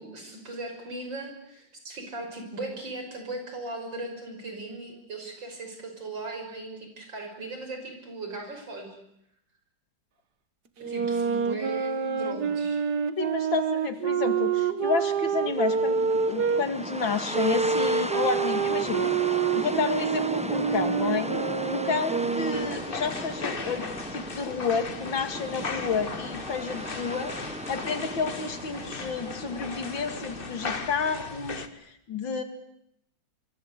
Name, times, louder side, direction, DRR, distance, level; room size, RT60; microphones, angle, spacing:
voice 1, 0.0-9.0 10.8-12.8, right 2 dB, 75° right, 4 dB, 6.5 m, -38 dB
sound 1, 10.8-16.6 17.3-22.8, right 6 dB, 60° right, 2.0 m, -27 dB
voice 2, 13.2-21.3 21.7-32.4, left 5 dB, 85° left, 8 dB, 3.0 m, -30 dB
sound 2, 15.0-30.7, right 1 dB, 5° right, 0.7 m, -37 dB
sound 3, 22.5-31.7, left 4 dB, 30° left, 1.4 m, -37 dB
25.5 x 24.5 x 8.2 m, 0.76 s
omnidirectional pair, 2.1 m